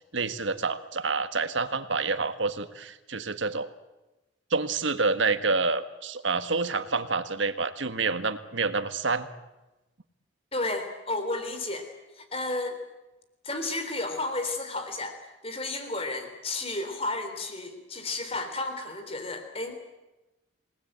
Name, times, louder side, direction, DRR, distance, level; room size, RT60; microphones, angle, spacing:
voice 1, 0.0-3.7 4.5-9.3, right 4 dB, 75° right, 10 dB, 1.6 m, -28 dB
voice 2, 10.5-11.9 12.2-12.8 13.4-15.2 15.4-19.7, left 2 dB, 30° left, 7 dB, 3.7 m, -32 dB
28.0 x 19.0 x 9.0 m, 1.0 s
head